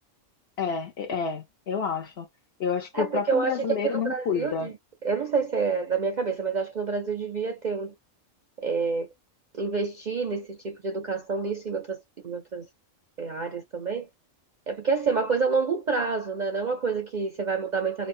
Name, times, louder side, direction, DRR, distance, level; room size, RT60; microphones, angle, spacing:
voice 1, 0.6-2.3 2.6-4.7, left 6 dB, 55° left, 1.0 m, -29 dB
voice 2, 2.9-4.7 5.0-7.9 8.6-9.1 9.6-12.0 12.2-12.7 13.2-14.1 14.7-18.1, right 5 dB, 50° right, 0.6 m, -28 dB
4.0 x 2.1 x 2.5 m
omnidirectional pair, 1.3 m